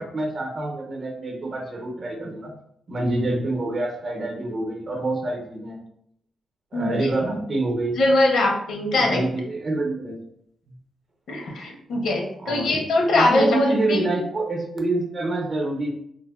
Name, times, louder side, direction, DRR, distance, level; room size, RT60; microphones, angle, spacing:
voice 1, 0.0-2.5 2.9-5.8 6.7-8.0 8.9-10.2 10.7-10.8 12.4-12.8 13.1-15.9, right 2 dB, 40° right, 0 dB, 0.6 m, -26 dB
voice 2, 6.7-7.1 8.0-9.2 11.3-14.0, left 2 dB, 80° left, 0 dB, 0.6 m, -22 dB
3.3 x 2.1 x 2.2 m, 0.72 s
wide cardioid pair, 140°, 0 cm